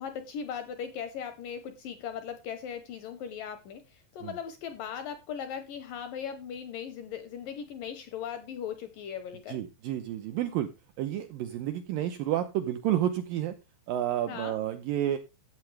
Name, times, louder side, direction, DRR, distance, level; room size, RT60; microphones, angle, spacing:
voice 1, 0.0-9.6 14.3-14.6, left 8 dB, 75° left, 2.1 m, -38 dB
voice 2, 9.5-10.7 11.0-13.5 13.9-15.2, right 12 dB, 85° right, 2.0 m, -30 dB
14.0 x 8.5 x 3.3 m
omnidirectional pair, 5.0 m